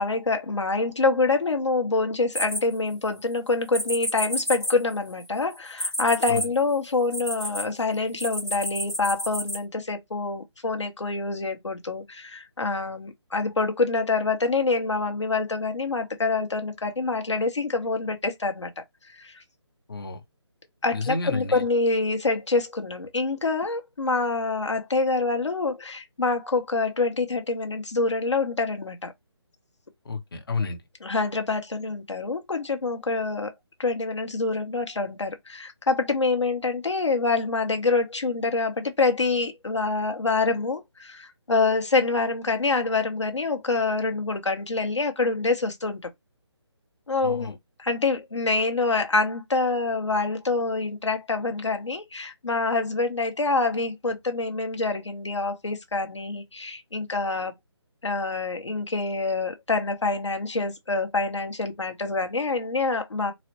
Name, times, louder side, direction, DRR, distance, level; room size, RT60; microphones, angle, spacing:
voice 1, 0.0-19.4 20.8-29.1 31.0-46.0 47.1-57.5 58.0-63.3, left 3 dB, 80° left, 1.0 m, -26 dB
sound 1, 2.3-3.2 3.7-7.6 8.2-9.6, equal, 5° left, 0.4 m, -30 dB
voice 2, 19.9-20.2 20.9-21.6 30.1-30.8 47.2-47.5, left 3 dB, 55° left, 0.9 m, -30 dB
4.0 x 2.0 x 2.9 m
figure-of-eight pair, 160°, 15 cm